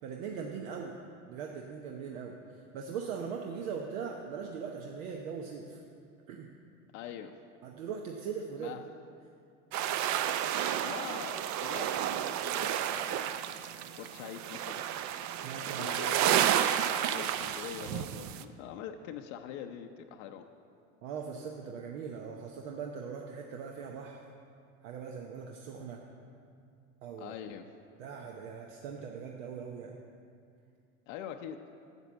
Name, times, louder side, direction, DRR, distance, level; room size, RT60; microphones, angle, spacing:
voice 1, 0.0-1.0 1.3-2.4 2.7-5.8 6.3-6.5 7.6-8.8 15.4-15.9 21.0-24.2 24.8-26.0 27.0-27.3 28.0-30.0, right 6 dB, 85° right, 1 dB, 0.9 m, -40 dB
voice 2, 6.9-7.3 8.6-8.8 10.8-13.4 14.0-14.8 15.8-20.4 27.2-27.7 31.1-31.6, left 9 dB, 75° left, 4 dB, 0.7 m, -44 dB
sound 1, 9.7-18.4, right 10 dB, 45° right, 0.5 m, -31 dB
8.1 x 7.6 x 7.2 m, 2.4 s
supercardioid pair, 110°, 39 cm